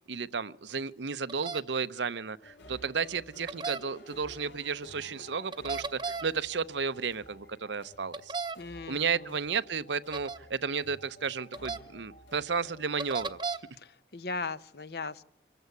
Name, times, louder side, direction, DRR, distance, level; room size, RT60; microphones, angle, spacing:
voice 1, 0.1-8.3 8.9-13.4, right 5 dB, 80° right, 14 dB, 0.8 m, -33 dB
sound 1, 1.3-1.6 3.5-3.8 5.5-6.3 8.1-8.6 10.1-10.4 11.5-11.8 13.0-13.6, right 4 dB, 25° right, 0.8 m, -34 dB
sound 2, 2.4-13.4, left 1 dB, 85° left, 3.5 m, -52 dB
voice 2, 8.6-9.4 13.7-15.2, left 4 dB, 60° left, 14 dB, 0.9 m, -38 dB
25.0 x 15.0 x 9.5 m, 0.81 s
head